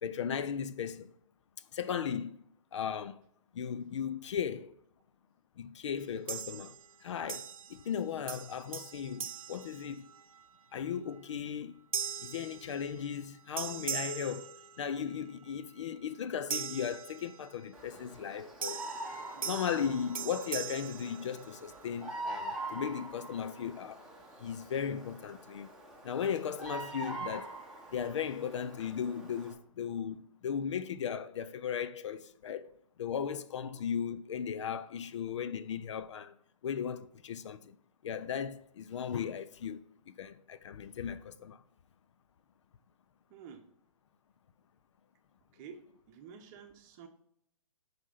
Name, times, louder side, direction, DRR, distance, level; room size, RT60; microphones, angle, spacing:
voice 1, 0.0-1.1 1.7-2.4 2.7-3.2 3.5-4.8 5.6-10.1 10.7-11.8 12.2-18.9 19.5-24.1 24.4-25.7 26.0-27.6 27.9-32.7 33.0-36.4 36.6-37.7 38.0-41.6, left 7 dB, 55° left, 0.5 m, -37 dB
sound 1, 6.3-6.9 7.3-8.0 8.3-10.4 10.9-11.2 11.9-13.3 13.6-15.2 16.5-17.7 18.6-21.9, right 7 dB, 75° right, 0.7 m, -41 dB
Bird vocalization bird call bird song, 17.7-29.5, right 2 dB, 5° right, 1.3 m, -44 dB
voice 2, 43.3-43.6 45.5-45.8 46.1-47.1, right 7 dB, 30° right, 1.0 m, -50 dB
5.9 x 5.1 x 4.1 m
figure-of-eight pair, 125°, 18 cm